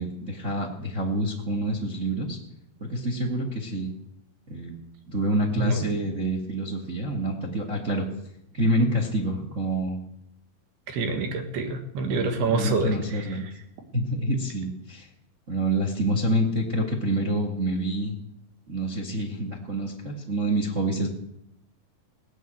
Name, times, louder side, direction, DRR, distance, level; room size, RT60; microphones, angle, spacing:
voice 1, 0.0-2.4 2.8-3.9 4.5-4.7 5.0-8.1 8.5-10.0 12.5-13.5 13.9-15.1 15.5-18.1 18.7-21.1, right 1 dB, 35° right, 1 dB, 1.2 m, -27 dB
voice 2, 5.6-5.9 10.9-12.9, right 2 dB, 80° right, 5 dB, 3.8 m, -26 dB
17.5 x 9.4 x 7.6 m, 0.77 s
omnidirectional pair, 4.5 m